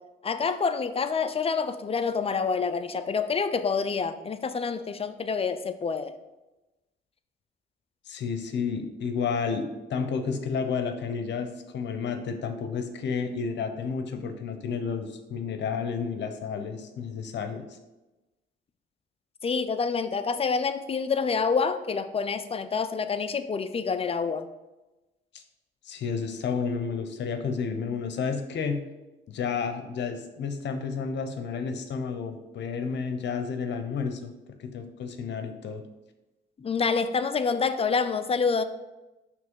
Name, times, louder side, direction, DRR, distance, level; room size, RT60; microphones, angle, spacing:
voice 1, 0.2-6.1 19.4-24.5 36.6-38.6, left 5 dB, 30° left, 10 dB, 0.5 m, -27 dB
voice 2, 8.1-17.6 25.3-25.4 25.8-28.8 29.3-34.3 34.6-35.8, left 5 dB, 65° left, 7 dB, 0.8 m, -31 dB
6.0 x 3.2 x 5.4 m, 1.0 s
cardioid pair, 90°, 20 cm